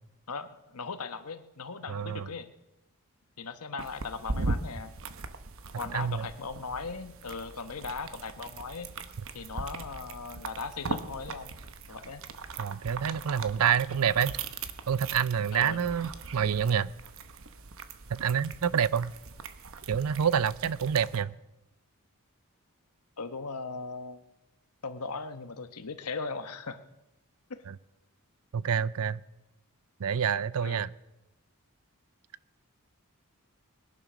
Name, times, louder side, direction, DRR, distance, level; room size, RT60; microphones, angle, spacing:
voice 1, 0.3-2.5 3.4-4.9 5.8-8.9 9.3-11.5 11.9-12.2 15.5-15.8 23.2-24.3 24.8-26.8 27.5-27.6 30.6-30.8, left 4 dB, 85° left, 9 dB, 1.1 m, -38 dB
voice 2, 1.9-2.3 5.9-6.3 12.6-14.4 14.9-16.9 18.1-19.1 19.9-21.4 27.7-27.8 28.5-29.2 30.0-30.9, right 8 dB, 75° right, 19 dB, 0.5 m, -27 dB
sound 1, 3.8-21.2, right 3 dB, 60° right, 0.9 m, -40 dB
20.5 x 11.0 x 6.2 m, 0.98 s
head